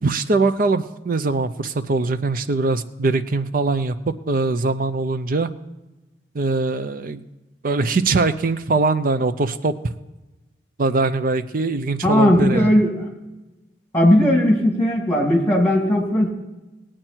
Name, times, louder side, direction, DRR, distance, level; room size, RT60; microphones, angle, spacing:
voice 1, 0.0-5.5 6.3-7.2 7.6-9.7 10.8-12.7, right 3 dB, 50° right, 11 dB, 0.6 m, -22 dB
voice 2, 12.0-13.1 13.9-16.3, left 1 dB, 15° left, 0 dB, 2.8 m, -17 dB
19.0 x 8.9 x 4.5 m, 1.1 s
head